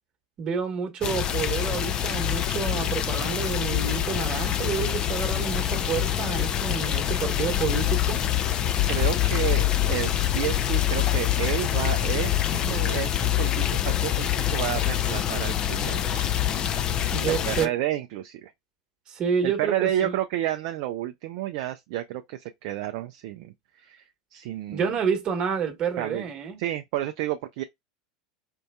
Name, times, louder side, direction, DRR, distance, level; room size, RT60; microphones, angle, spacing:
voice 1, 0.4-8.2 17.1-17.7 19.1-20.1 24.7-26.6, right 6 dB, 35° right, 1.2 m, -29 dB
sound 1, 1.0-17.7, left 11 dB, 35° left, 0.5 m, -25 dB
voice 2, 8.8-16.2 17.2-18.5 19.4-24.0 24.3-24.9 26.0-26.3 26.6-27.6, right 13 dB, 55° right, 0.4 m, -31 dB
4.4 x 2.6 x 2.2 m
figure-of-eight pair, 85°, 2 cm